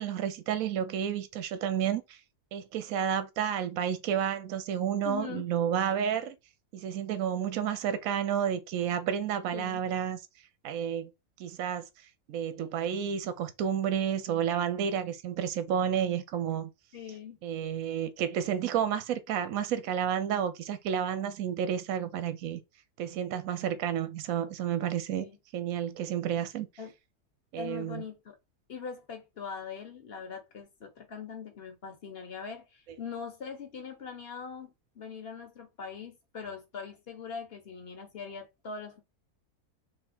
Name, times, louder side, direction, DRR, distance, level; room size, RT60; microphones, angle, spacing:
voice 1, 0.0-2.2 2.5-6.3 6.7-10.2 10.6-11.1 11.4-11.8 12.3-16.7 17.4-22.6 23.0-25.3 25.5-26.7 27.5-28.0, right 9 dB, 70° right, 1.1 m, -31 dB
voice 2, 5.0-5.5 9.5-9.9 16.9-17.4 25.1-25.4 26.8-26.9 27.5-28.3 28.7-39.0, left 6 dB, 45° left, 1.2 m, -42 dB
3.5 x 3.2 x 4.2 m
omnidirectional pair, 1.6 m